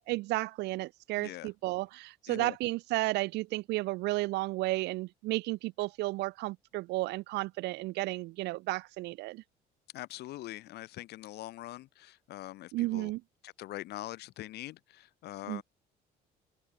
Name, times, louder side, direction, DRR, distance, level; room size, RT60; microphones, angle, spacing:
voice 1, 0.1-9.4 12.7-13.2 15.5-15.6, right 20 dB, 85° right, 0.8 m, -33 dB
voice 2, 1.2-1.5 2.3-2.6 9.9-13.1 13.4-15.6, left 16 dB, 75° left, 1.6 m, -43 dB
open air
cardioid pair, 110°, 17 cm